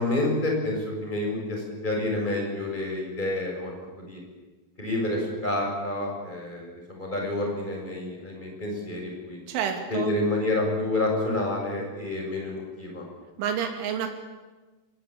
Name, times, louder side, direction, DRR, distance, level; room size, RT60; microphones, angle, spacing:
voice 1, 0.0-3.7 4.1-4.2 4.8-9.4 9.9-13.0, left 2 dB, 10° left, 0 dB, 6.3 m, -28 dB
voice 2, 9.5-10.1 13.4-14.1, right 8 dB, 70° right, 4 dB, 4.9 m, -29 dB
25.5 x 18.5 x 8.7 m, 1.2 s
omnidirectional pair, 5.9 m